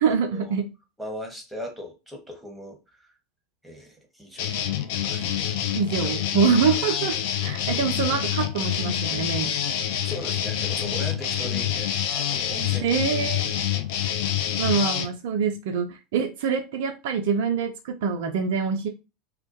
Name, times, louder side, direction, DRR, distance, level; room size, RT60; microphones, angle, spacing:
voice 1, 0.0-0.7 5.7-7.2 7.4-9.5 12.8-13.4 14.6-18.9, right 6 dB, 60° right, 5 dB, 0.3 m, -25 dB
voice 2, 1.0-3.1 3.6-4.5 5.0-5.7 6.0-6.3 10.0-13.0 13.4-13.6 13.9-14.0, equal, 5° right, 1 dB, 0.8 m, -39 dB
sound 1, 4.4-15.1, left 10 dB, 55° left, 0.3 m, -27 dB
2.1 x 2.1 x 2.7 m, 0.28 s
figure-of-eight pair, 80°, 0 cm